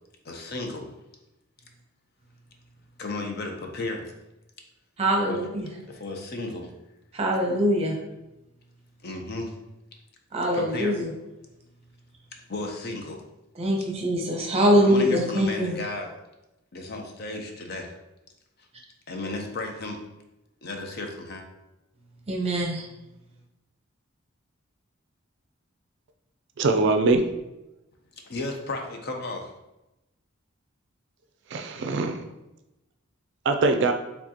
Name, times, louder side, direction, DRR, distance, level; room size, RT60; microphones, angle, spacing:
voice 1, 0.2-0.9 3.0-4.1 5.3-5.4 5.9-6.7 9.0-9.5 10.5-11.0 12.5-13.2 14.8-16.1 16.7-17.9 19.1-20.0 20.6-21.4 28.3-29.5, left 2 dB, 50° left, 3 dB, 0.6 m, -34 dB
voice 2, 5.0-5.6 7.1-8.0 10.3-11.1 13.6-15.8 22.3-22.9, equal, 30° right, 1 dB, 0.8 m, -23 dB
voice 3, 26.6-27.2 31.5-32.2 33.5-33.9, right 3 dB, 55° right, 6 dB, 0.4 m, -22 dB
4.9 x 3.5 x 2.8 m, 0.95 s
head